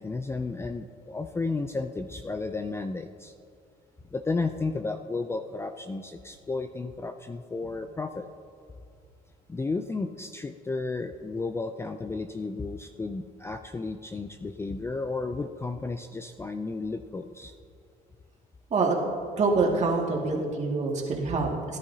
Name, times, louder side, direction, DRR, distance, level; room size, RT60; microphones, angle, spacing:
voice 1, 0.0-3.3 4.1-8.3 9.5-17.5, left 3 dB, 15° left, 8 dB, 0.4 m, -33 dB
voice 2, 19.4-21.8, right 3 dB, 40° right, -1 dB, 2.1 m, -26 dB
17.5 x 11.0 x 2.8 m, 2.4 s
cardioid pair, 110°, 17 cm